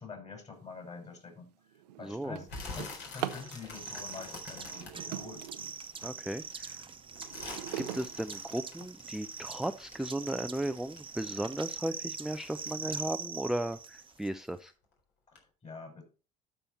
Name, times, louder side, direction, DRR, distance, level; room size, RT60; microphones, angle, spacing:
voice 1, 0.0-1.5 2.0-2.5 2.7-5.5 15.3-16.0, left 4 dB, 35° left, 3 dB, 6.0 m, -46 dB
Drawer open or close, 0.9-1.1 1.5-3.5 4.6-6.2 6.7-9.2 9.8-9.9 10.4-10.5 10.9-11.2, right 12 dB, 90° right, 0.7 m, -42 dB
voice 2, 2.0-2.4 6.0-6.8 7.8-14.7, right 1 dB, ahead, 9 dB, 0.5 m, -36 dB
sound 1, 2.5-6.1 6.5-11.3 11.5-14.2 14.5-14.9 15.3-15.4, left 3 dB, 60° left, 4.2 m, -46 dB
sound 2, 3.4-14.3, right 5 dB, 25° right, 1.0 m, -43 dB
12.5 x 5.6 x 4.3 m, 0.34 s
hypercardioid pair, 70°, 20 cm